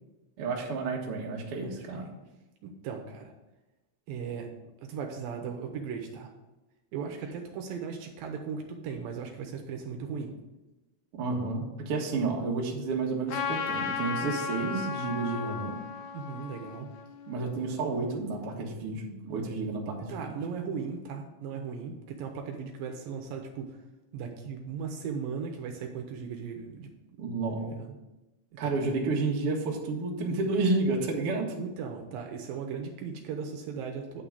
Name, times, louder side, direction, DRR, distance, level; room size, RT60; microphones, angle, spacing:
voice 1, 0.4-2.1 11.1-15.8 17.3-20.4 27.2-27.7 28.6-31.5, right 3 dB, 60° right, -1 dB, 1.5 m, -31 dB
voice 2, 1.6-2.0 2.6-3.3 4.1-4.5 4.8-6.3 6.9-10.3 16.1-16.9 20.1-23.8 24.1-26.9 27.6-27.9 28.6-29.0 31.6-34.2, right 6 dB, 75° right, 3 dB, 2.3 m, -37 dB
Trumpet, 13.3-18.0, left 6 dB, 85° left, 2.7 m, -35 dB
9.1 x 3.8 x 7.1 m, 1.0 s
omnidirectional pair, 4.4 m